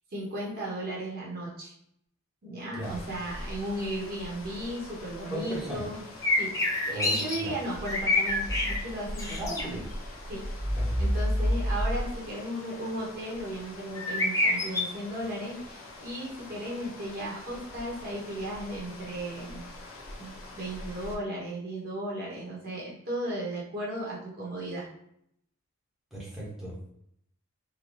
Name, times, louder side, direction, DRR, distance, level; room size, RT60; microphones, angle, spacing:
voice 1, 0.1-1.7 2.4-6.0 6.4-6.5 6.8-9.8 10.3-10.4 11.0-19.6 20.2-24.9, right 1 dB, 45° right, -5 dB, 1.0 m, -35 dB
sound 1, 2.8-21.1, equal, 70° left, 0.8 m, -36 dB
voice 2, 5.3-5.8 6.9-7.6 9.4-9.9 10.6-10.9 26.1-26.7, right 1 dB, ahead, -7 dB, 1.0 m, -37 dB
sound 2, 6.2-7.4 7.7-8.8 9.2-9.6 14.0-14.8, left 2 dB, 15° left, 0.4 m, -26 dB
4.0 x 2.2 x 3.0 m, 0.73 s
head